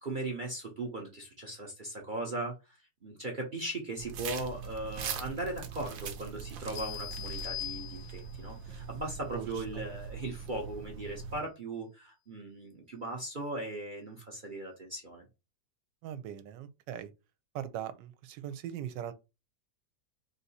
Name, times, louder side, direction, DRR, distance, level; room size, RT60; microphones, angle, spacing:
voice 1, 0.0-15.3, right 2 dB, 45° right, 0.6 m, -38 dB
sound 1, 4.0-11.4, right 6 dB, 60° right, 0.9 m, -42 dB
sound 2, 6.8-8.5, left 15 dB, 80° left, 1.2 m, -41 dB
voice 2, 16.0-17.1 17.5-19.1, right 10 dB, 85° right, 1.3 m, -40 dB
3.7 x 2.7 x 4.0 m
omnidirectional pair, 1.9 m